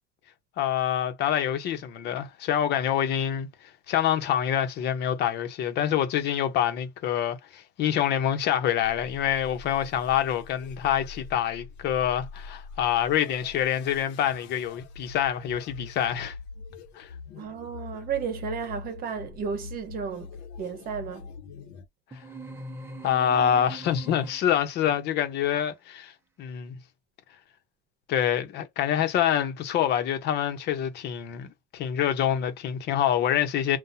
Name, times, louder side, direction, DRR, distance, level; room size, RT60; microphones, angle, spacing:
voice 1, 0.6-3.5 3.9-16.4 16.9-17.1 23.0-26.1 26.4-26.7 28.1-33.8, left 10 dB, 60° left, 1.1 m, -26 dB
sound 1, 8.8-21.9, left 4 dB, 85° left, 1.2 m, -44 dB
voice 2, 17.4-20.3 20.6-21.3, right 7 dB, 50° right, 1.1 m, -33 dB
sound 2, 22.1-24.7, right 1 dB, 15° right, 0.9 m, -41 dB
5.6 x 2.6 x 2.7 m
cardioid pair, 125°, 19 cm